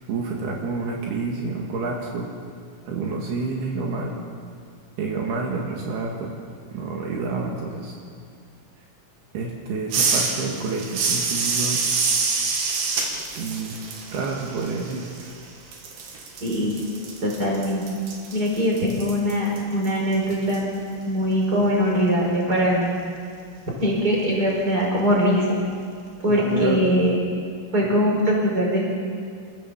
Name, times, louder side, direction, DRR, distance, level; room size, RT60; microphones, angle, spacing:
voice 1, 0.1-2.3 2.9-4.2 5.0-6.3 6.7-7.9 9.3-12.0 13.4-13.7 14.1-15.1 26.3-26.8, right 3 dB, 75° right, -1 dB, 3.9 m, -28 dB
sound 1, 9.9-15.4 15.7-20.6, right 4 dB, 90° right, 4.6 m, -27 dB
voice 2, 16.4-16.8 17.2-17.9 18.3-20.7 21.1-23.0 23.8-25.5 26.2-27.1 27.7-28.9, equal, 20° right, -2 dB, 5.5 m, -21 dB
28.0 x 16.0 x 7.3 m, 2.2 s
omnidirectional pair, 4.7 m